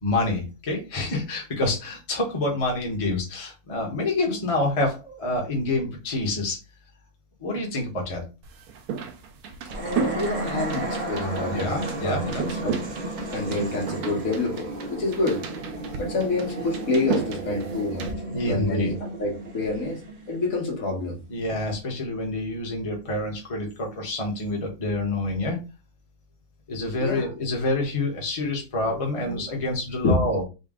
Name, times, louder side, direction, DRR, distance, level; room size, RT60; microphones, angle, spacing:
voice 1, 0.0-6.6 7.4-8.2 11.4-12.5 18.3-18.9 21.3-25.6 26.7-30.4, left 2 dB, 25° left, 1.0 m, -27 dB
sound 1, 8.4-18.1, right 6 dB, 80° right, 1.1 m, -34 dB
sound 2, 9.7-21.0, right 2 dB, 50° right, 0.5 m, -33 dB
voice 2, 9.8-12.8 13.3-15.4 16.0-18.1 18.4-20.0 20.3-21.2 27.0-27.3 28.8-29.0 29.2-29.4 30.0-30.3, left 2 dB, 70° left, 1.6 m, -27 dB
3.9 x 2.2 x 3.6 m
omnidirectional pair, 1.5 m